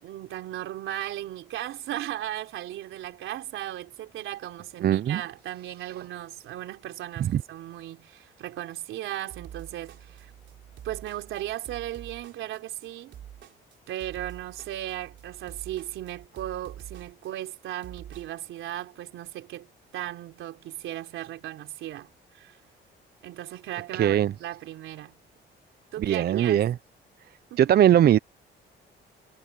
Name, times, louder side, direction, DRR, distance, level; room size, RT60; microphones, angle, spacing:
voice 1, 0.0-10.3 10.8-13.2 13.9-19.7 19.9-22.6 23.2-25.1 25.9-26.7 27.5-27.6, right 13 dB, 85° right, 3.9 m, -36 dB
voice 2, 4.8-5.2 7.2-7.4 23.9-24.3 26.0-26.7 27.6-28.2, right 10 dB, 55° right, 0.5 m, -20 dB
sound 1, 9.3-18.5, right 10 dB, 70° right, 3.8 m, -46 dB
cardioid pair, 90°, 20 cm